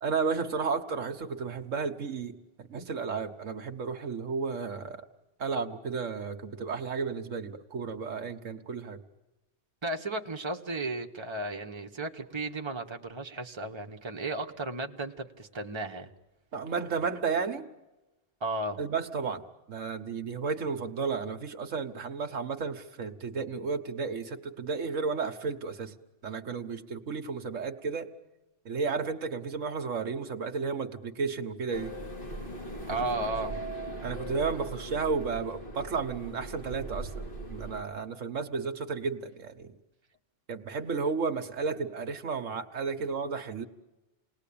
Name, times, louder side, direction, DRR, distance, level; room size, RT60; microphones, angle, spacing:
voice 1, 0.0-5.0 5.4-9.0 16.5-17.7 18.8-25.9 26.2-28.1 28.6-32.0 33.1-33.2 34.0-39.7 40.5-43.7, right 5 dB, 80° right, 6 dB, 1.7 m, -33 dB
voice 2, 9.8-16.1 18.4-18.8 32.8-33.6, right 2 dB, 20° right, 3 dB, 1.4 m, -34 dB
sound 1, 31.7-37.8, right 1 dB, 45° left, 3.4 m, -39 dB
29.0 x 20.0 x 8.7 m, 1.0 s
omnidirectional pair, 1.3 m